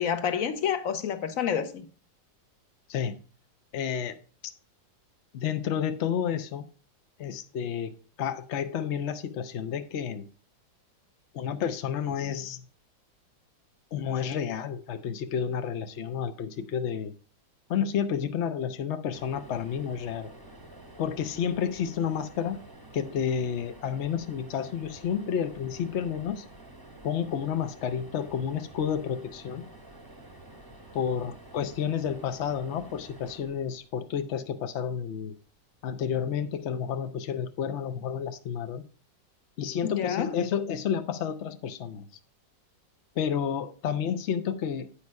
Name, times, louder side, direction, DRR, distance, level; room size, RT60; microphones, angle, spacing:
voice 1, 0.0-1.9 39.8-40.3, left 8 dB, 60° left, 1.0 m, -28 dB
voice 2, 3.7-4.2 5.3-6.7 7.2-10.3 11.3-12.7 13.9-17.1 17.7-20.3 21.0-22.6 22.9-26.4 27.0-29.6 30.9-35.4 35.8-38.8 39.6-42.1 43.2-44.9, left 8 dB, 75° left, 0.6 m, -30 dB
sound 1, 19.1-34.4 36.1-36.3 36.5-36.6, right 2 dB, 15° right, 0.8 m, -49 dB
8.7 x 4.7 x 5.3 m
omnidirectional pair, 2.0 m